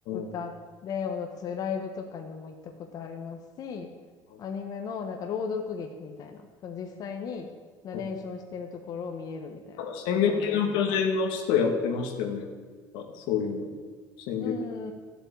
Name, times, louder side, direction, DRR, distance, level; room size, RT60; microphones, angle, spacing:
voice 1, 0.1-3.9 4.4-7.5 7.8-9.9 10.1-10.6 10.9-11.0 14.4-14.9, left 6 dB, 50° left, 4 dB, 1.3 m, -36 dB
voice 2, 9.8-12.5 12.9-13.7 14.3-14.6, left 6 dB, 85° left, 4 dB, 2.1 m, -27 dB
13.0 x 8.1 x 8.4 m, 1.5 s
cardioid pair, 125°, 8 cm